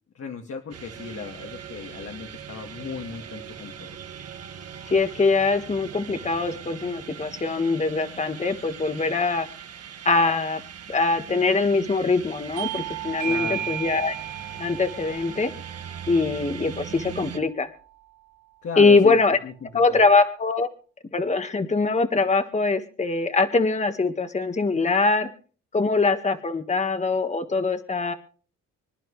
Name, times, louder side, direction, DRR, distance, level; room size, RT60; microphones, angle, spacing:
voice 1, 0.1-4.0 13.3-13.7 18.6-20.0, left 6 dB, 50° left, 2 dB, 2.2 m, -36 dB
sound 1, 0.7-17.4, right 8 dB, 55° right, 1.8 m, -41 dB
voice 2, 4.9-9.5 10.0-10.6 10.9-14.2 14.6-15.5 16.1-17.7 18.8-19.4 19.7-20.7 21.1-25.3 25.7-28.1, left 3 dB, 25° left, 8 dB, 1.7 m, -22 dB
Bell / Doorbell, 12.6-17.6, right 11 dB, 85° right, 4.4 m, -35 dB
26.0 x 11.0 x 3.3 m, 0.40 s
cardioid pair, 90°, 30 cm